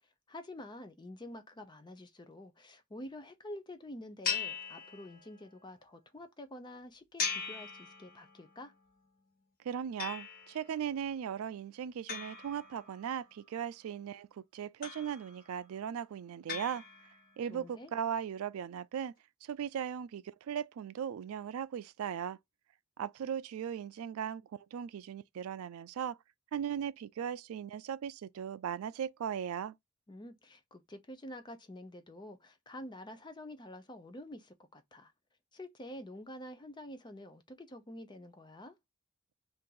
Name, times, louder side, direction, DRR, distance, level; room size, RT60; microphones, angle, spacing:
voice 1, 0.3-8.7 17.5-17.9 30.1-35.1 35.5-38.8, left 1 dB, 20° left, 0.5 m, -48 dB
sound 1, 4.2-5.5 7.2-8.5 10.0-10.7 12.1-13.2 14.8-15.5 16.5-17.4, left 5 dB, 45° left, 1.1 m, -39 dB
voice 2, 9.6-16.8 17.4-19.1 19.4-22.4 23.0-24.4 24.7-26.2 26.5-29.7, right 8 dB, 75° right, 0.3 m, -38 dB
2.8 x 2.5 x 3.7 m
head